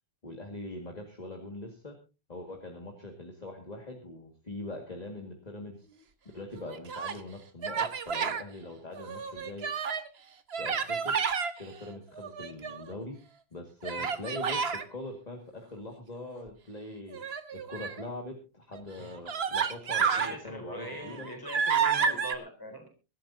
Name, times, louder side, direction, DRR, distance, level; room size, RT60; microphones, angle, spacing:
voice 1, 0.2-1.9 2.3-5.9 6.3-9.7 10.6-11.2 11.6-13.2 13.5-17.2 17.5-21.4, left 2 dB, 40° left, 2 dB, 2.2 m, -42 dB
Human voice, 6.6-7.2 7.6-8.4 8.9-10.1 10.5-11.5 12.1-12.9 13.8-14.8 17.1-18.0 18.7-18.8 19.3-20.3 20.8-22.3, right 6 dB, 85° right, 1.4 m, -30 dB
voice 2, 19.9-22.9, equal, 20° left, 4 dB, 4.2 m, -42 dB
23.5 x 12.5 x 2.7 m, 0.30 s
omnidirectional pair, 1.0 m